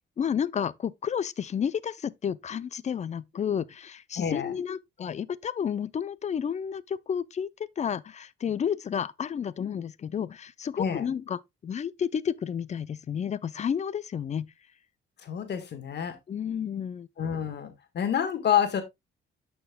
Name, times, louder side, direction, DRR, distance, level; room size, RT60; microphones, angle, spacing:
voice 1, 0.2-7.5 7.8-14.5 16.3-17.1, left 8 dB, 35° left, 0.4 m, -31 dB
voice 2, 4.1-4.5 10.8-11.1 15.2-16.1 17.2-18.8, left 8 dB, 60° left, 1.5 m, -28 dB
12.0 x 4.4 x 2.2 m
cardioid pair, 90°, 20 cm